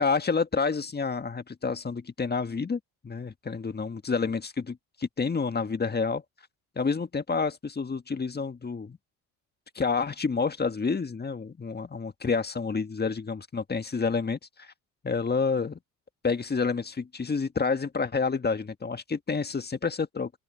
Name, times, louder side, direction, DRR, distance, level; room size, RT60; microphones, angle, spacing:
voice 1, 0.0-6.2 6.8-9.0 9.8-14.7 15.0-15.8 16.2-20.3, left 5 dB, 25° left, 1.7 m, -29 dB
open air
hypercardioid pair, 60°, 39 cm